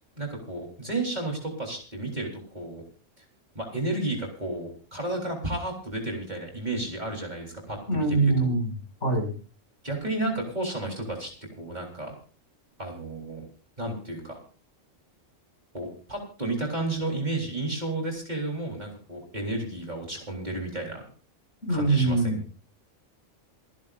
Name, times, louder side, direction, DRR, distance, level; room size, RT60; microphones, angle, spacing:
voice 1, 0.2-2.8 3.2-3.3 3.5-8.5 9.8-11.3 11.6-12.1 12.8-13.4 13.8-14.4 15.7-21.0 21.7-22.4, right 2 dB, 35° right, 0 dB, 4.0 m, -32 dB
voice 2, 7.9-8.7 9.0-9.3 21.7-22.4, right 3 dB, 60° left, 2 dB, 6.3 m, -23 dB
28.5 x 10.5 x 2.6 m, 0.39 s
omnidirectional pair, 1.3 m